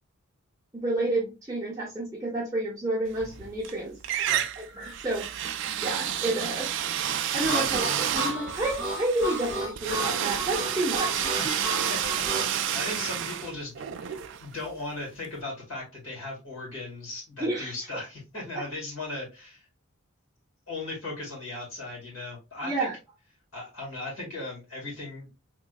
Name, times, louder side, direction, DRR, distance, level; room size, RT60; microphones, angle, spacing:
voice 1, 0.8-4.0 4.6-5.3 5.8-6.7 7.3-11.4 17.4-17.9 22.6-22.9, right 2 dB, 15° right, -5 dB, 0.6 m, -30 dB
sound 1, 3.1-3.7 4.0-14.9, right 10 dB, 55° right, 0.3 m, -30 dB
voice 2, 7.4-7.8 11.4-12.0 12.3-19.6 20.7-22.9 23.5-25.3, left 2 dB, 65° left, -4 dB, 2.1 m, -37 dB
Harmonica, 7.4-12.5, right 1 dB, 20° left, 1.7 m, -33 dB
3.7 x 3.1 x 2.3 m, 0.27 s
head